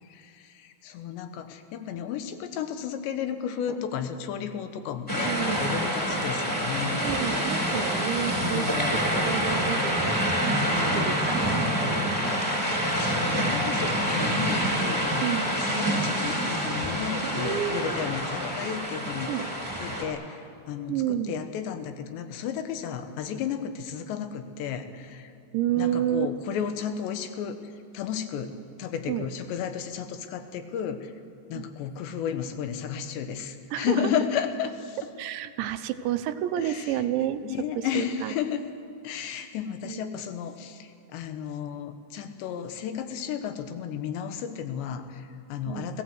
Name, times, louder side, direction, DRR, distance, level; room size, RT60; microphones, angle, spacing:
voice 1, 0.0-7.0 8.2-8.9 10.7-11.2 12.3-15.3 15.6-19.5 19.8-25.3 25.8-31.1 31.5-35.0 36.6-37.0 37.4-38.6 39.0-46.0, left 8 dB, 80° left, 8 dB, 3.4 m, -33 dB
sound 1, 5.1-20.0, equal, ahead, 3.3 m, -27 dB
voice 2, 5.2-5.9 7.0-10.5 10.9-11.6 11.8-12.0 15.2-15.6 17.2-18.0 19.3-19.5 20.9-21.4 25.5-26.3 29.1-29.3 31.5-31.7 33.7-34.1 35.2-38.3 39.8-40.2 45.7-45.9, right 11 dB, 90° right, 10 dB, 3.2 m, -30 dB
29.5 x 17.5 x 7.9 m, 2.3 s
omnidirectional pair, 5.1 m